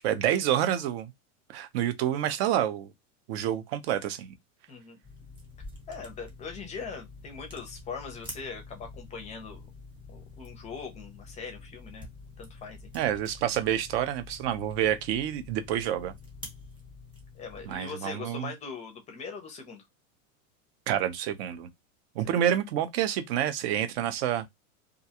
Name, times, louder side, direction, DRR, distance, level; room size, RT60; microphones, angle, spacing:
voice 1, 0.0-1.1 1.5-2.9 3.3-4.3 12.9-16.1 17.7-18.5 20.9-21.7 22.2-24.5, right 11 dB, 50° right, 0.6 m, -28 dB
voice 2, 4.7-5.0 5.9-9.7 10.1-12.1 12.4-12.9 17.3-19.8 22.3-22.5, left 5 dB, 20° left, 0.5 m, -41 dB
sound 1, 5.0-17.8, left 2 dB, 10° right, 0.9 m, -47 dB
2.4 x 2.2 x 2.8 m
supercardioid pair, 140°, 39 cm